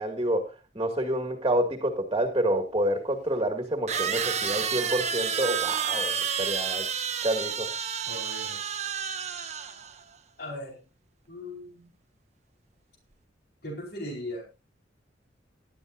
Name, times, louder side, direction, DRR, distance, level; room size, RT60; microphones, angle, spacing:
voice 1, 0.0-6.9 7.2-7.7, right 1 dB, 25° right, 5 dB, 2.0 m, -28 dB
sound 1, 2.3-2.4 3.9-10.0, right 7 dB, 40° right, 1.0 m, -30 dB
voice 2, 8.0-8.6 10.4-10.8 11.3-11.9 13.6-14.4, left 1 dB, 60° left, 1 dB, 4.5 m, -38 dB
18.0 x 12.0 x 2.5 m, 0.28 s
head